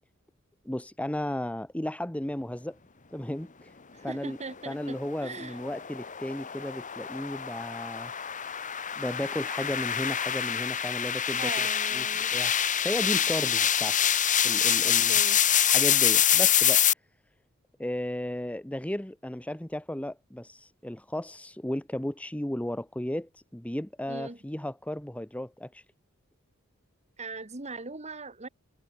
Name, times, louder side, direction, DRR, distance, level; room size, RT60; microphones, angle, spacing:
voice 1, 0.6-2.8 3.1-3.7 4.0-4.4 4.7-8.1 9.0-11.5 11.9-12.5 12.8-14.0 14.4-15.2 15.7-16.8 17.8-25.8, left 1 dB, 5° left, 0.8 m, -34 dB
voice 2, 3.9-5.6 11.4-12.3 14.8-15.4 24.1-24.4 27.2-28.5, right 3 dB, 30° right, 1.7 m, -40 dB
sound 1, 4.9-16.9, left 10 dB, 35° left, 1.7 m, -26 dB
head